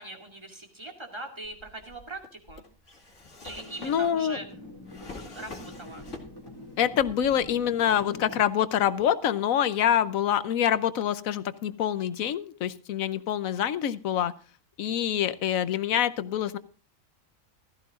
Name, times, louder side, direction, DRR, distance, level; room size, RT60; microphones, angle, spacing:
voice 1, 0.0-2.6 3.4-4.5 5.3-6.0, right 2 dB, 20° right, 3 dB, 2.3 m, -41 dB
Drawer open or close, 1.4-6.6 6.9-7.8, left 3 dB, 65° left, 2.6 m, -46 dB
sound 1, 3.4-8.4, left 1 dB, 15° left, 2.8 m, -45 dB
voice 2, 3.8-4.4 6.8-14.3 14.8-16.6, left 10 dB, 90° left, 15 dB, 1.2 m, -26 dB
16.0 x 14.0 x 2.5 m, 0.37 s
omnidirectional pair, 1.4 m